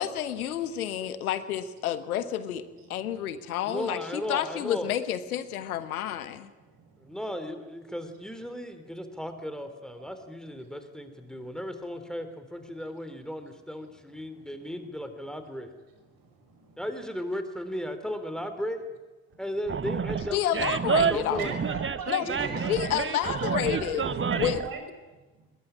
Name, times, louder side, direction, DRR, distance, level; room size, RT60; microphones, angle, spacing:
voice 1, 0.0-2.6 2.9-6.5 20.3-21.4 22.1-22.3 22.7-24.0 24.4-24.6, left 11 dB, 80° left, 14 dB, 1.2 m, -30 dB
voice 2, 0.6-0.9 1.2-1.3 2.8-3.5 6.1-7.2 9.1-9.2 10.0-10.3 10.6-10.7 11.1-11.6 12.7-12.9 13.4-13.5 13.8-14.7 15.9-16.8 19.3-19.4 21.2-25.5, right 4 dB, 50° right, 5 dB, 6.6 m, -42 dB
voice 3, 3.6-4.9 7.0-15.7 16.8-18.8 19.4-20.4 21.1-21.6 22.3-22.7, equal, ahead, 8 dB, 3.7 m, -36 dB
Animal, 19.7-24.7, right 6 dB, 30° right, 1.2 m, -29 dB
22.5 x 21.0 x 10.0 m, 1.2 s
figure-of-eight pair, 40°, 43 cm